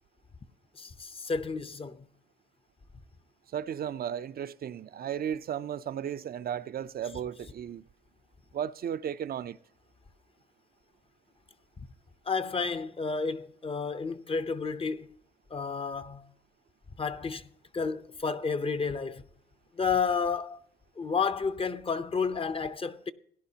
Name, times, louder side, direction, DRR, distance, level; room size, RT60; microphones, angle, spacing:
voice 1, 0.8-2.0 12.3-15.1 15.5-16.2 17.0-19.2 19.7-20.6 21.0-23.1, left 5 dB, 30° left, 0.7 m, -31 dB
voice 2, 3.5-7.8 8.5-9.6, right 9 dB, 50° right, 0.5 m, -35 dB
17.0 x 11.0 x 2.8 m
cardioid pair, 90°, 20 cm